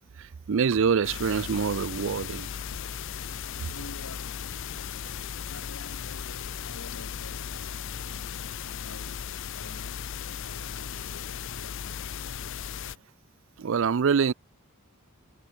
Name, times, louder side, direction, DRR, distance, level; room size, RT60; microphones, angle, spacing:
voice 1, 0.5-2.5 13.6-14.3, right 6 dB, 65° right, 0.4 m, -25 dB
sound 1, 1.0-13.0, left 8 dB, 60° left, 0.6 m, -36 dB
voice 2, 3.6-4.4 5.3-12.3, left 2 dB, 85° left, 2.6 m, -49 dB
head